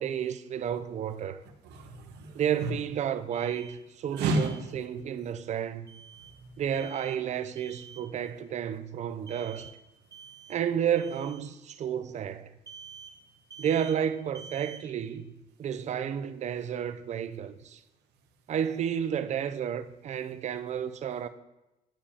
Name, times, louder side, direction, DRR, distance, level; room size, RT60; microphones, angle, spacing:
voice 1, 0.0-1.4 2.3-6.0 6.6-9.7 10.5-12.5 13.6-15.3 15.6-17.8 18.5-21.3, right 8 dB, 45° right, 0.4 m, -31 dB
voice 2, 1.6-2.7 4.1-4.6 4.9-5.0 6.2-6.5, right 2 dB, 80° right, 1.0 m, -32 dB
Alarm, 3.3-3.8 4.2-4.6 5.9-6.3 6.7-7.2 7.6-8.1 9.3-9.8 10.1-10.6 11.0-11.4 12.7-13.2 13.5-14.0 14.4-14.8, right 7 dB, 20° right, 1.0 m, -48 dB
10.5 x 4.9 x 2.8 m
cardioid pair, 110°, 17 cm